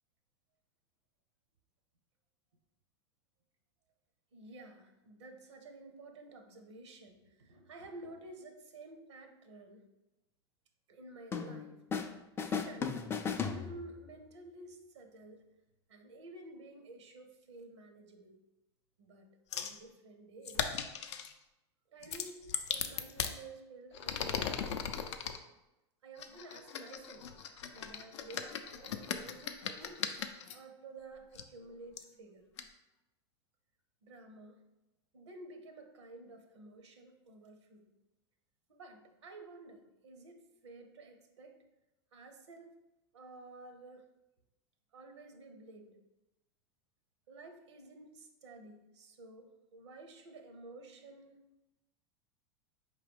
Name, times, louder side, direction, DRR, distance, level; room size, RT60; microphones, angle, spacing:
voice 1, 4.3-9.9 10.9-11.8 12.4-13.0 13.4-15.4 15.9-18.4 19.0-19.3 19.6-20.7 21.9-24.8 26.0-27.3 27.7-30.0 30.5-32.4 34.0-34.6 35.1-37.9 38.7-41.6 42.1-42.8 43.1-44.1 44.9-46.0 47.3-51.4, right 2 dB, 85° right, 6 dB, 0.7 m, -52 dB
sound 1, 11.3-12.1 12.4-14.1, left 6 dB, 15° left, 0.3 m, -36 dB
sound 2, 19.5-19.8 20.4-21.3 22.0-23.3 23.9-25.4 26.2-30.5 31.3-31.4 32.0-32.1 32.6-32.7, left 8 dB, 75° left, 0.5 m, -38 dB
4.7 x 3.0 x 3.4 m, 0.97 s
hypercardioid pair, 105°, 14 cm